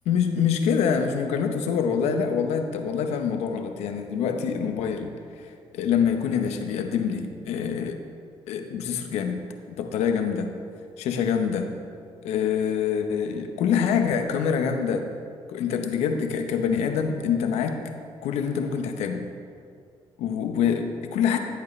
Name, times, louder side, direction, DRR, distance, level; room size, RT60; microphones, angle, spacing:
voice 1, 0.1-5.1 5.7-8.0 8.5-9.4 9.7-10.5 11.0-11.7 12.2-15.1 15.5-17.8 18.2-19.2 20.2-21.4, left 7 dB, 85° left, 5 dB, 0.9 m, -25 dB
15.5 x 8.3 x 3.2 m, 2.3 s
supercardioid pair, 65°, 11 cm